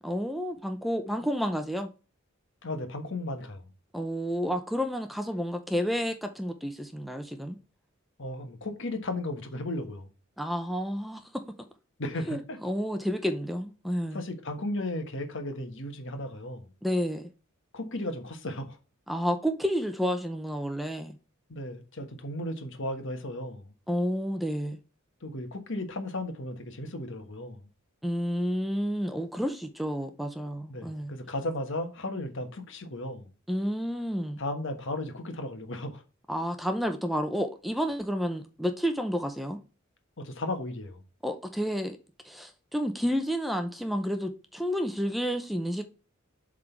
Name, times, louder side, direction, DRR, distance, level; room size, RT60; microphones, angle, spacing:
voice 1, 0.0-1.9 3.9-7.6 10.4-11.4 12.3-14.2 16.8-17.3 19.1-21.1 23.9-24.8 28.0-31.1 33.5-34.4 36.3-39.6 41.2-42.0 42.2-45.8, equal, ahead, 0.6 m, -30 dB
voice 2, 2.6-3.6 8.2-10.1 12.0-12.6 14.1-16.6 17.7-18.8 21.5-23.7 25.2-27.6 30.7-33.3 34.4-36.0 40.2-41.0, left 1 dB, 65° left, 1.4 m, -35 dB
7.6 x 3.8 x 4.5 m
head